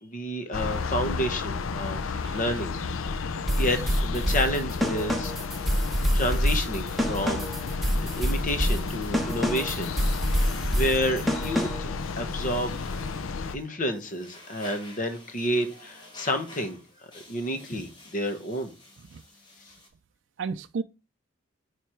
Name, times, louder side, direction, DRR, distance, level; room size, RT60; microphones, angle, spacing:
voice 1, 0.0-2.7 3.2-5.3 6.1-9.9 10.5-12.9 13.5-16.8 17.1-18.7, equal, 40° left, 1.3 m, -30 dB
sound 1, 0.5-13.6, left 4 dB, 90° left, 0.5 m, -32 dB
voice 2, 2.2-2.6 19.1-19.2 20.4-20.8, right 5 dB, 65° right, 0.4 m, -33 dB
sound 2, 3.5-12.0, equal, ahead, 1.1 m, -27 dB
sound 3, 6.5-19.9, left 1 dB, 25° left, 1.9 m, -51 dB
9.2 x 3.4 x 4.5 m
head